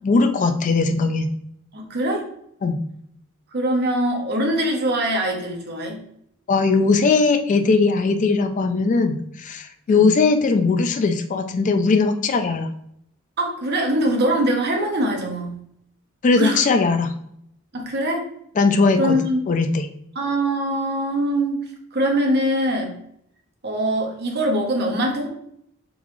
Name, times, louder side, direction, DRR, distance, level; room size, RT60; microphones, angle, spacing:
voice 1, 0.0-1.3 2.6-2.8 6.5-12.7 16.2-17.1 18.6-19.1 19.5-19.9, left 4 dB, 35° left, 7 dB, 0.3 m, -19 dB
voice 2, 1.7-2.2 3.5-6.0 9.9-10.1 13.4-15.6 16.4-16.6 17.7-18.2 19.0-19.4 20.1-23.0 23.6-25.3, right 1 dB, 50° right, 1 dB, 0.9 m, -23 dB
3.9 x 3.5 x 3.1 m, 0.72 s
head